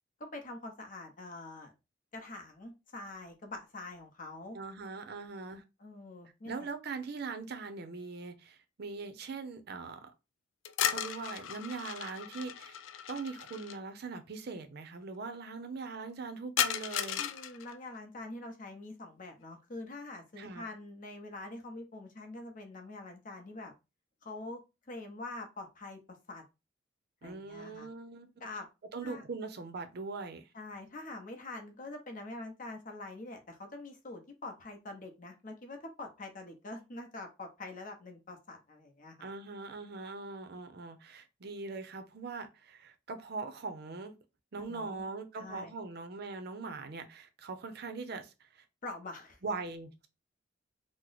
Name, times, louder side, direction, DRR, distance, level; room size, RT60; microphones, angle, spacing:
voice 1, 0.2-1.7 2.1-4.6 5.8-6.7 17.1-23.7 24.2-24.6 24.9-26.0 26.3-26.4 27.2-27.9 28.4-28.7 29.0-29.2 30.5-39.2 44.5-45.1 45.4-45.7 48.8-49.4, left 2 dB, 45° left, 0.7 m, -45 dB
voice 2, 4.5-5.6 6.4-10.1 10.8-12.8 13.1-17.2 20.4-20.6 27.2-28.3 28.9-30.5 39.2-44.1 44.5-48.6 49.4-50.1, right 4 dB, 55° right, 0.5 m, -41 dB
sound 1, 10.6-13.8 16.6-17.8, left 10 dB, 90° left, 0.3 m, -35 dB
2.9 x 2.0 x 3.9 m
head